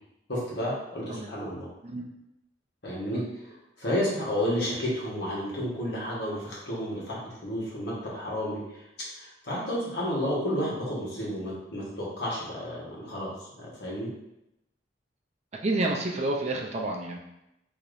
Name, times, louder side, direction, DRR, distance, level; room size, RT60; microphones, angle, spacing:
voice 1, 0.3-1.7 2.8-3.2 3.8-14.1, equal, 60° left, -6 dB, 1.3 m, -31 dB
voice 2, 15.6-17.2, right 2 dB, 35° right, 0 dB, 0.5 m, -29 dB
4.7 x 2.9 x 2.6 m, 0.87 s
head